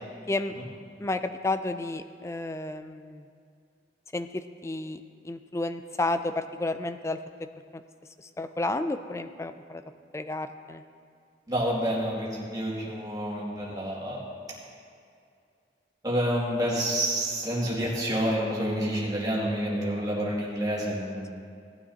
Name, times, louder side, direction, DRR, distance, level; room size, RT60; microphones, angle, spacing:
voice 1, 1.0-3.3 4.1-7.2 7.7-7.8 8.2-9.8 10.1-10.8, left 2 dB, 15° left, 10 dB, 0.4 m, -31 dB
voice 2, 11.5-14.2 16.0-21.3, equal, 20° right, -5 dB, 2.3 m, -28 dB
17.5 x 9.4 x 2.9 m, 2.4 s
head